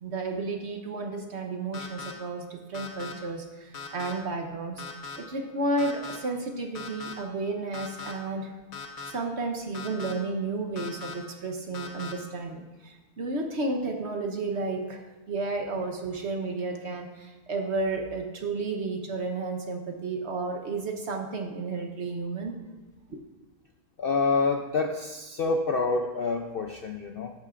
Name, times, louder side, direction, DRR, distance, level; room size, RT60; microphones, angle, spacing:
voice 1, 0.0-4.8 5.2-8.5 9.1-22.6, right 3 dB, 50° right, 3 dB, 1.1 m, -32 dB
sound 1, 1.7-2.1 2.7-3.1 3.7-4.1 4.8-5.2 5.8-6.2 6.7-7.1 7.7-8.1 8.7-9.1 9.7-10.1 10.8-11.1 11.7-12.1, left 5 dB, 65° left, 1.5 m, -39 dB
voice 2, 24.0-27.3, left 3 dB, 80° left, 5 dB, 0.5 m, -27 dB
13.5 x 11.5 x 2.5 m, 1.2 s
omnidirectional pair, 1.7 m